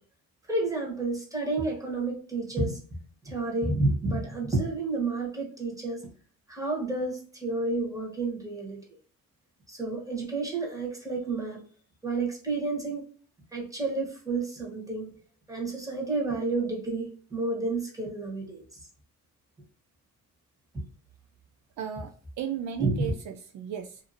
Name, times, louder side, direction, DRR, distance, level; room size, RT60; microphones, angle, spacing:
voice 1, 0.5-6.1 6.5-8.8 9.7-11.6 12.0-13.0 13.5-15.1 15.5-18.6 20.7-20.8 22.8-23.0, right 3 dB, 10° right, 1.4 m, -30 dB
voice 2, 21.8-24.0, right 9 dB, 70° right, 0.5 m, -35 dB
2.7 x 2.5 x 2.7 m
cardioid pair, 90°, 30 cm